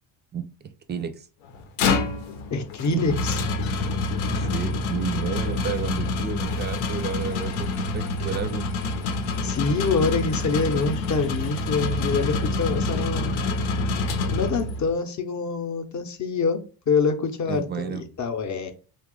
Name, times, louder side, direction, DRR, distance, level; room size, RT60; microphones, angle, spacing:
voice 1, 0.3-1.3 2.9-3.0 4.4-7.7 7.9-8.7 17.5-18.1, right 7 dB, 25° right, 10 dB, 0.4 m, -31 dB
sound 1, 1.5-14.9, left 3 dB, 85° left, 0.8 m, -27 dB
voice 2, 2.5-3.3 9.4-13.4 14.3-18.7, left 4 dB, 35° left, 7 dB, 0.7 m, -26 dB
2.9 x 2.4 x 3.7 m, 0.35 s
supercardioid pair, 80°, 48 cm